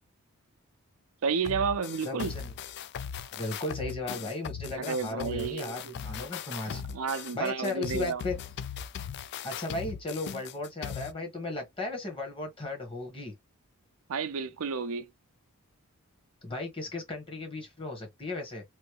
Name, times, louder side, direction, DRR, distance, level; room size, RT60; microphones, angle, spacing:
voice 1, 1.2-2.3 4.8-6.0 6.7-8.2 14.1-15.1, right 5 dB, 65° right, 0.5 m, -31 dB
sound 1, 1.4-11.1, left 7 dB, 50° left, 0.3 m, -39 dB
voice 2, 2.0-2.5 3.3-6.8 7.3-8.4 9.4-13.3 16.4-18.6, left 2 dB, 25° left, 1.3 m, -36 dB
3.1 x 2.7 x 3.1 m
head